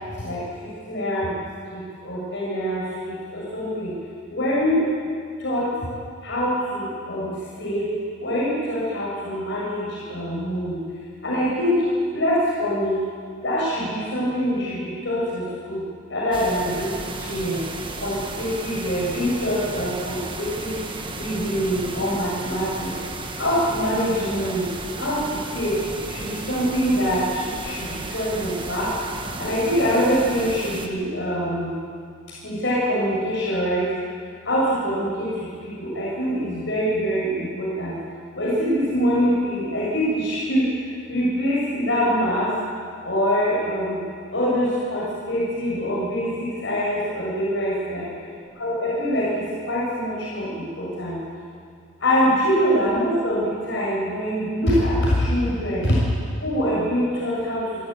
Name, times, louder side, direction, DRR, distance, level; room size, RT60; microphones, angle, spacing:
voice 1, 0.2-1.3 1.7-3.9 4.3-4.8 5.4-5.7 6.2-7.3 7.6-7.9 8.2-10.8 11.2-11.8 12.1-13.0 13.4-15.8 16.1-16.9 17.2-17.6 18.0-20.7 21.2-22.9 23.4-24.7 25.0-25.8 26.1-28.9 29.4-31.7 32.4-33.9 34.4-38.0 38.3-40.7 41.1-42.5 43.0-44.0 44.3-48.0 48.6-51.2 52.0-56.0 56.4-57.6, equal, 60° left, -7 dB, 7.0 m, -24 dB
sound 1, 16.3-30.9, right 2 dB, 25° right, 1.4 m, -34 dB
26.0 x 13.5 x 8.9 m, 2.2 s
head